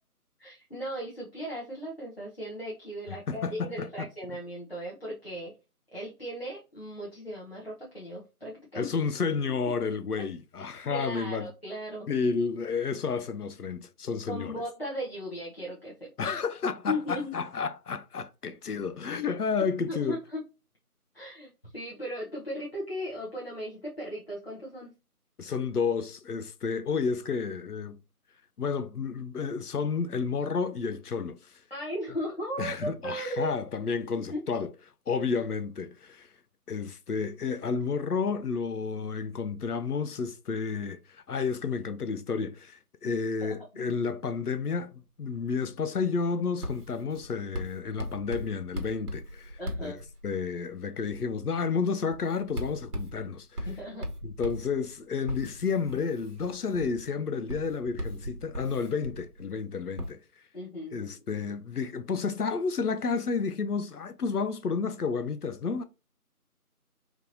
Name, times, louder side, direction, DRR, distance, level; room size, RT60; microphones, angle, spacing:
voice 1, 0.4-5.5 5.9-8.9 10.9-12.1 14.3-16.3 16.9-17.3 19.9-20.4 21.1-25.0 31.7-33.5 34.2-34.4 35.1-35.2 43.4-43.8 49.6-50.0 53.7-54.1 60.5-61.2, equal, 40° left, 0.9 m, -37 dB
voice 2, 3.3-4.1 8.7-11.5 12.1-14.5 16.2-20.2 25.4-28.0 28.6-31.6 32.6-34.7 35.1-36.3 36.7-50.0 50.2-53.7 54.2-60.2 60.9-65.8, left 5 dB, 75° left, 0.6 m, -31 dB
Writing, 46.6-50.5 51.1-51.4 52.1-59.5 60.0-60.1, equal, 80° right, 1.2 m, -39 dB
3.5 x 3.0 x 2.7 m
figure-of-eight pair, 180°, 46 cm